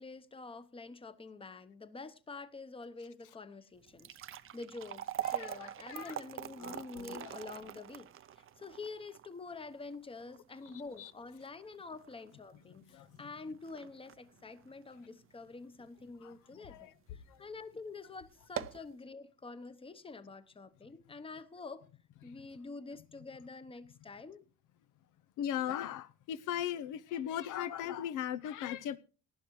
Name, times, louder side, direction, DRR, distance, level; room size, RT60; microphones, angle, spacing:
voice 1, 0.0-21.9 22.2-24.5, left 3 dB, 20° left, 0.9 m, -47 dB
sound 1, 3.8-16.1 16.5-16.6 17.3-17.5 17.8-17.9 18.4-18.9, right 11 dB, 45° right, 0.6 m, -44 dB
voice 2, 5.3-6.1 6.6-7.3 10.7-11.1 12.9-13.1 16.2-16.3 16.7-16.9 25.4-29.0, left 10 dB, 85° left, 0.8 m, -38 dB
18.5 x 11.5 x 3.2 m
cardioid pair, 125°, 30 cm